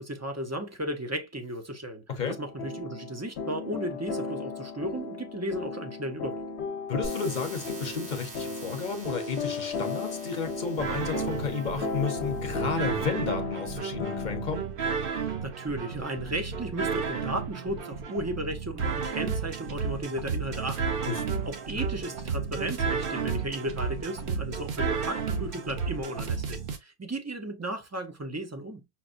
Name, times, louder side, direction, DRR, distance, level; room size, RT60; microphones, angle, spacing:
voice 1, 0.0-6.4 15.4-21.0 21.4-28.8, right 1 dB, 25° right, 0.4 m, -35 dB
sound 1, 2.3-14.6, left 4 dB, 75° left, 0.8 m, -35 dB
voice 2, 6.9-14.7 21.1-21.5, left 5 dB, 50° left, 0.8 m, -32 dB
sound 2, 7.0-13.0, right 2 dB, 80° right, 1.5 m, -46 dB
sound 3, 10.8-26.8, right 5 dB, 60° right, 0.8 m, -32 dB
5.8 x 2.1 x 2.4 m
omnidirectional pair, 1.1 m